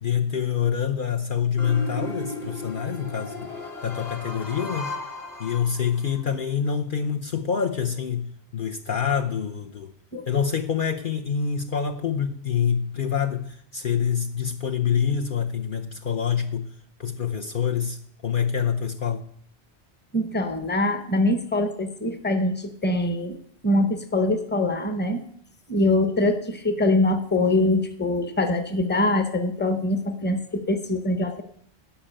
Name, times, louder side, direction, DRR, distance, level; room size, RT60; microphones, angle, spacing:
voice 1, 0.0-3.6 3.8-4.9 5.4-9.9 10.3-16.7 17.0-19.2, left 7 dB, 55° left, 5 dB, 0.9 m, -26 dB
sound 1, 1.6-6.2, left 2 dB, 35° left, 1.9 m, -36 dB
voice 2, 20.1-23.4 23.6-25.2 25.7-31.4, left 2 dB, 10° left, 8 dB, 1.0 m, -23 dB
12.0 x 5.9 x 8.8 m, 0.65 s
omnidirectional pair, 1.1 m